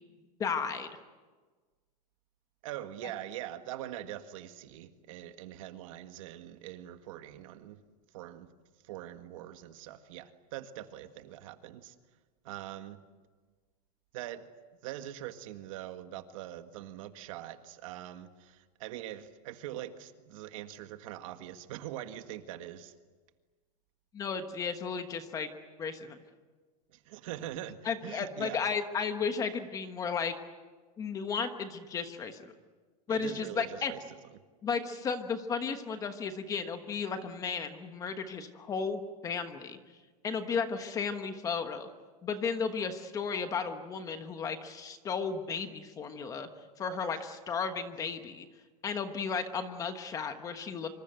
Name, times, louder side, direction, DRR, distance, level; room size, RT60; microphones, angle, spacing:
voice 1, 0.4-0.9 24.1-25.5 25.8-26.2 27.8-30.3 31.0-32.4 33.1-33.9 34.6-39.8 40.2-41.9 42.2-46.5 46.8-48.5 48.8-50.9, left 5 dB, 15° left, 8 dB, 1.2 m, -34 dB
voice 2, 2.6-7.8 8.1-8.5 8.8-11.9 12.4-13.0 14.1-14.5 14.8-22.9 26.9-28.6 33.1-34.0 34.3-34.4, right 12 dB, 55° right, 8 dB, 1.8 m, -43 dB
26.0 x 26.0 x 8.0 m, 1.4 s
supercardioid pair, 170°, 21 cm